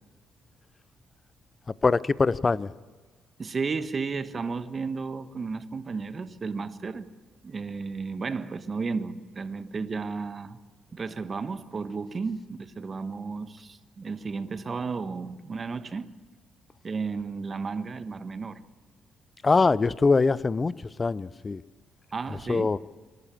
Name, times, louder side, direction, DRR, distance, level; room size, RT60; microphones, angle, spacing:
voice 1, 1.8-2.7 19.4-20.7 21.0-21.6 22.5-22.8, left 4 dB, 30° left, 0.6 m, -23 dB
voice 2, 3.4-7.1 7.4-10.6 10.9-16.1 16.8-18.6 22.1-22.7, right 4 dB, 35° right, 1.3 m, -33 dB
26.5 x 12.0 x 8.8 m
cardioid pair, 90°, 0 cm